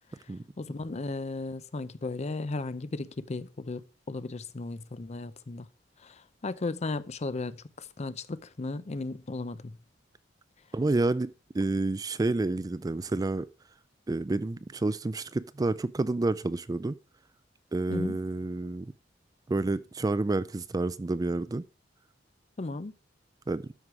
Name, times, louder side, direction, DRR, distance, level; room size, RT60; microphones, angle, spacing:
voice 1, 0.6-3.8 4.1-5.7 6.0-9.7 17.9-18.2 22.6-22.9, left 3 dB, 35° left, 0.5 m, -35 dB
voice 2, 10.7-13.5 14.1-17.0 17.7-18.9 19.5-21.6 23.5-23.7, right 2 dB, 20° right, 0.3 m, -29 dB
12.5 x 4.8 x 4.7 m
head